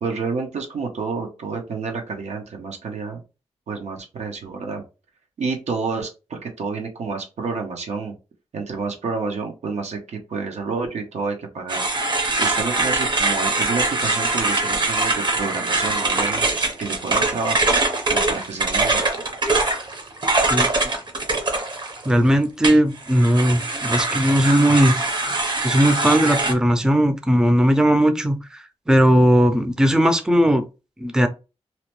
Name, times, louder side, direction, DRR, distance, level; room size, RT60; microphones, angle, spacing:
voice 1, 0.0-3.2 3.7-4.8 5.4-8.1 8.5-11.9 12.4-16.4 16.8-17.7 18.1-19.0, right 4 dB, 85° right, 0.8 m, -29 dB
sound 1, 11.7-22.2 22.6-26.5, right 2 dB, 45° right, 0.7 m, -22 dB
voice 2, 22.1-24.9 25.6-30.6 31.0-31.3, equal, 5° right, 0.4 m, -18 dB
2.8 x 2.1 x 3.0 m
wide cardioid pair, 85°, 11 cm